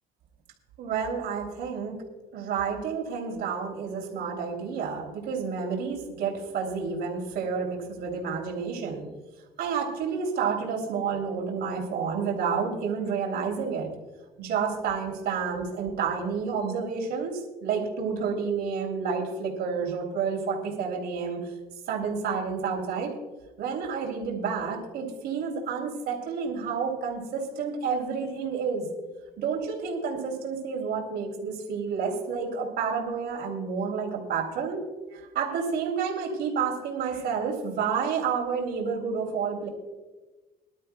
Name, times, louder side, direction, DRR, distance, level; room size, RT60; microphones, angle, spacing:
voice 1, 0.8-1.9 2.3-9.1 9.6-13.9 14.4-21.5 21.9-23.1 23.6-28.9 29.4-34.8 35.1-39.7, right 6 dB, 75° right, 0 dB, 3.0 m, -30 dB
23.0 x 12.0 x 2.3 m, 1.2 s
cardioid pair, 110°, 17 cm